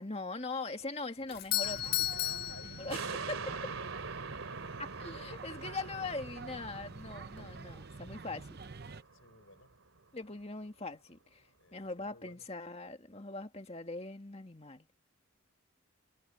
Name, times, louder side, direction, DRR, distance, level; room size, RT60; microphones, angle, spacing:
voice 1, 0.0-2.0 2.7-3.6 5.0-8.6 10.1-11.4 11.7-14.9, left 3 dB, 30° left, 2.0 m, -41 dB
Doorbell, 1.3-3.5, left 14 dB, 45° left, 0.3 m, -34 dB
sound 1, 1.6-9.0, right 4 dB, 45° right, 0.7 m, -48 dB
voice 2, 2.1-2.9 3.7-3.8 4.5-4.6 8.8-9.7 11.6-12.5, left 2 dB, 70° left, 6.8 m, -56 dB
sound 2, 2.9-9.6 10.0-10.1, right 5 dB, 75° right, 2.9 m, -44 dB
head